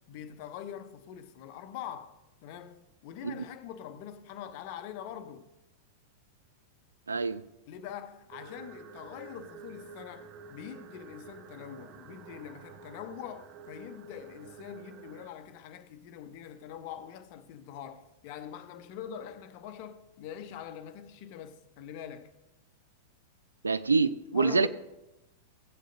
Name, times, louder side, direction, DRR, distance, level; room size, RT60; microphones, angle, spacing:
voice 1, 0.1-5.4 7.7-22.3 24.3-24.7, left 9 dB, 50° left, 0.8 m, -44 dB
voice 2, 7.1-7.4 23.6-24.7, right 4 dB, 80° right, 0.4 m, -26 dB
sound 1, 8.3-15.3, right 5 dB, 40° right, 0.7 m, -49 dB
16.5 x 9.0 x 2.7 m
figure-of-eight pair, 95°, 0 cm